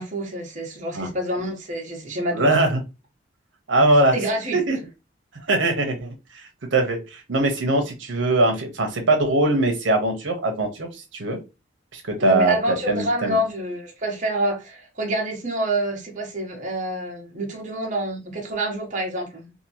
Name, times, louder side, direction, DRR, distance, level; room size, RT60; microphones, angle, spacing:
voice 1, 0.0-2.6 4.1-4.6 12.2-19.5, right 1 dB, 45° right, 0.8 m, -27 dB
voice 2, 2.4-2.8 3.7-4.1 4.5-4.8 5.5-6.1 6.7-11.4 11.9-13.4, right 2 dB, 80° right, 0.8 m, -21 dB
2.8 x 2.5 x 2.7 m
head